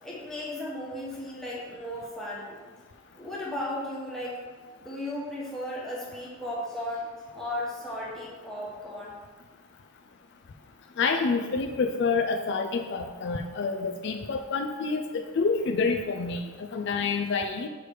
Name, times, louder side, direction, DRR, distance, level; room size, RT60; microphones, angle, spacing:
voice 1, 0.0-2.6 3.1-4.4 4.8-7.1 7.3-9.2, left 1 dB, ahead, -6 dB, 1.3 m, -35 dB
voice 2, 11.0-17.7, left 4 dB, 60° left, 5 dB, 0.4 m, -28 dB
6.3 x 3.4 x 4.6 m, 1.4 s
head